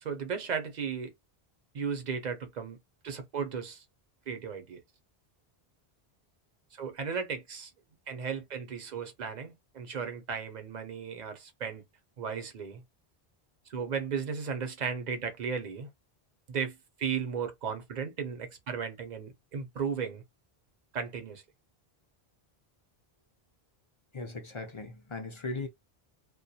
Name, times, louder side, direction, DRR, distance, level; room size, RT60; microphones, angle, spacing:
voice 1, 0.0-1.1 1.7-2.8 3.0-3.8 4.3-4.8 6.8-7.7 8.1-11.8 12.2-12.8 13.7-15.9 16.5-20.2 20.9-21.4, right 6 dB, 50° right, 0.7 m, -35 dB
voice 2, 24.1-25.7, left 3 dB, 45° left, 0.4 m, -38 dB
2.2 x 2.2 x 2.7 m
omnidirectional pair, 1.0 m